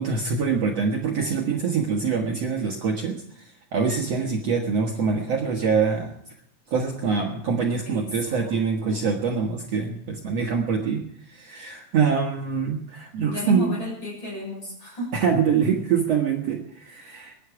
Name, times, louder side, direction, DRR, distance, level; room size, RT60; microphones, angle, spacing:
voice 1, 0.0-6.1 6.7-11.0 11.3-13.7 15.1-17.3, right 5 dB, 80° right, 1 dB, 1.4 m, -24 dB
voice 2, 7.8-9.2 13.2-15.1, equal, 25° left, 0 dB, 6.4 m, -33 dB
23.5 x 10.0 x 4.9 m, 0.76 s
omnidirectional pair, 5.2 m